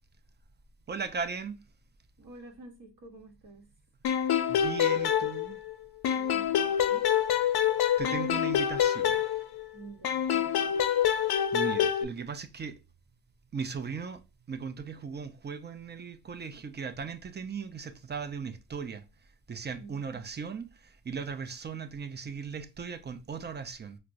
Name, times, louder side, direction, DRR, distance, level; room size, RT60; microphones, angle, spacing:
voice 1, 0.9-1.6 4.5-5.6 8.0-9.3 11.5-12.8 13.5-14.2 14.5-19.0 19.5-24.0, right 5 dB, 25° right, 0.4 m, -37 dB
voice 2, 2.2-3.7 6.1-7.1 9.7-10.8 19.8-20.2, right 3 dB, 55° right, 1.0 m, -50 dB
sound 1, 4.0-5.7 6.0-9.7 10.0-12.0, left 9 dB, 65° left, 0.5 m, -26 dB
4.2 x 2.0 x 2.5 m
cardioid pair, 65°, 42 cm